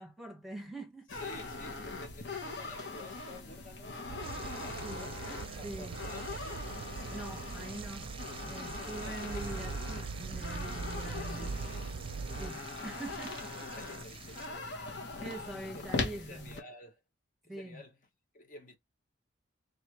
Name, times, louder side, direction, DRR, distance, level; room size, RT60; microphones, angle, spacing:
voice 1, 0.0-1.1 4.8-5.2 5.6-6.0 7.1-8.2 8.4-11.6 12.4-13.4 15.2-16.6 17.4-17.8, right 1 dB, ahead, 1.1 m, -44 dB
sound 1, 1.1-16.6, left 3 dB, 60° left, 1.1 m, -41 dB
voice 2, 1.1-4.0 4.5-5.1 5.6-6.7 8.7-9.2 11.0-11.5 13.7-15.0 15.3-17.0 17.4-18.0 18.3-18.8, left 1 dB, 45° left, 0.9 m, -51 dB
sound 2, 4.1-12.5, right 4 dB, 75° right, 0.4 m, -42 dB
sound 3, 4.2-14.5, right 7 dB, 30° right, 0.6 m, -50 dB
3.8 x 3.3 x 3.1 m
head